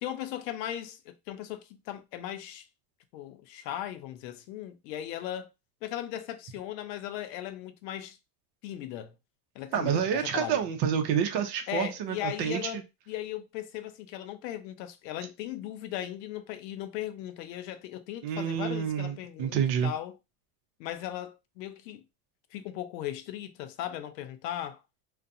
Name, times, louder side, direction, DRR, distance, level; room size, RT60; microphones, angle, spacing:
voice 1, 0.0-2.7 3.1-5.5 5.8-8.2 8.6-9.1 9.6-10.7 11.7-20.2 20.8-22.0 22.5-24.8, left 12 dB, 90° left, 0.6 m, -38 dB
voice 2, 9.7-12.6 18.2-19.9, right 8 dB, 55° right, 0.7 m, -28 dB
2.4 x 2.2 x 2.6 m
supercardioid pair, 110°, 49 cm